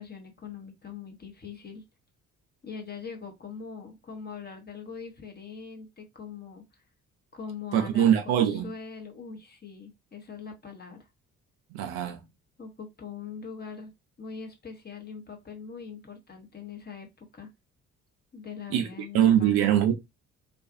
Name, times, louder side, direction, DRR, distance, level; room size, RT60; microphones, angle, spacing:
voice 1, 0.0-1.8 2.6-6.8 7.3-11.1 12.6-13.9 14.2-17.5 18.3-19.6, left 6 dB, 20° left, 0.9 m, -42 dB
voice 2, 7.7-8.7 11.7-12.2 18.7-18.9 19.1-19.9, right 10 dB, 55° right, 0.6 m, -22 dB
2.5 x 2.3 x 2.4 m
figure-of-eight pair, 45°, 44 cm